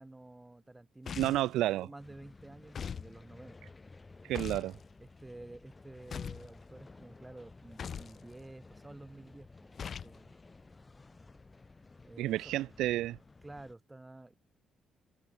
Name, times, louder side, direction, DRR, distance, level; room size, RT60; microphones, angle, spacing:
voice 1, 0.0-1.4 1.8-3.7 5.0-10.3 12.0-12.5 13.4-14.4, right 2 dB, 15° right, 7.4 m, -51 dB
sound 1, 1.1-1.5 2.7-3.1 4.3-4.7 6.1-6.5 7.8-8.2 9.8-10.2, left 7 dB, 50° left, 0.6 m, -40 dB
voice 2, 1.2-1.9 4.2-4.7 12.2-13.2, right 15 dB, 90° right, 0.3 m, -30 dB
sound 2, 2.0-13.7, left 3 dB, 25° left, 7.3 m, -55 dB
cardioid pair, 90°, 0 cm